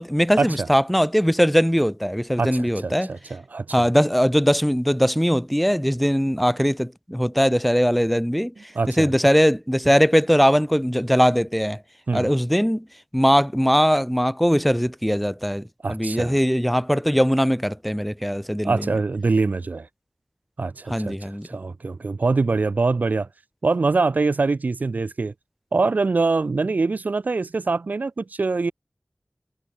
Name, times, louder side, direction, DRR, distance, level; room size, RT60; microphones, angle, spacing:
voice 1, 0.0-3.1 3.7-11.8 12.1-12.8 13.1-18.9 20.9-21.5, equal, ahead, 3.4 m, -20 dB
voice 2, 2.4-3.8 8.7-9.1 12.1-12.3 15.8-16.4 18.6-19.9 20.6-23.3 23.6-25.3 25.7-28.7, right 3 dB, 85° right, 1.7 m, -24 dB
wide cardioid pair, 65°, 3 cm